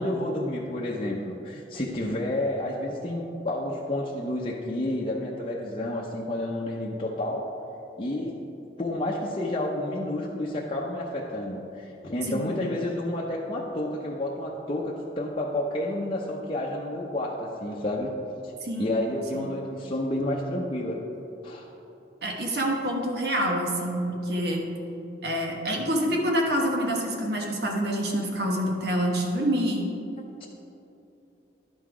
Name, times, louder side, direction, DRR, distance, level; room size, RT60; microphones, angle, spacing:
voice 1, 0.0-7.5 8.0-8.4 8.8-18.2 18.4-18.5 18.8-21.0 21.4-21.7 30.2-30.5, left 1 dB, 30° left, -4 dB, 0.7 m, -30 dB
voice 2, 22.2-24.7 25.2-29.9, equal, 65° right, 0 dB, 1.3 m, -27 dB
11.0 x 5.8 x 4.8 m, 2.9 s
head